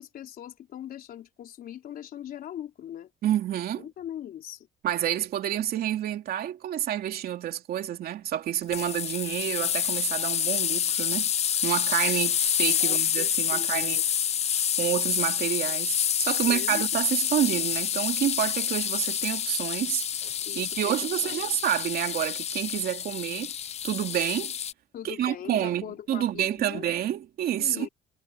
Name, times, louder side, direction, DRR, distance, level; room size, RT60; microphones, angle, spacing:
voice 1, 0.0-3.1 3.8-4.7 12.8-14.0 16.5-16.8 20.5-21.0 21.2-21.4 24.9-26.9 27.6-27.9, left 11 dB, 60° left, 4.0 m, -40 dB
voice 2, 3.2-3.9 4.8-11.3 11.6-14.0 14.8-23.5 23.8-24.5 25.0-27.9, right 11 dB, 65° right, 2.9 m, -29 dB
sound 1, 8.7-24.7, left 9 dB, 40° left, 0.6 m, -28 dB
cardioid pair, 110°, 17 cm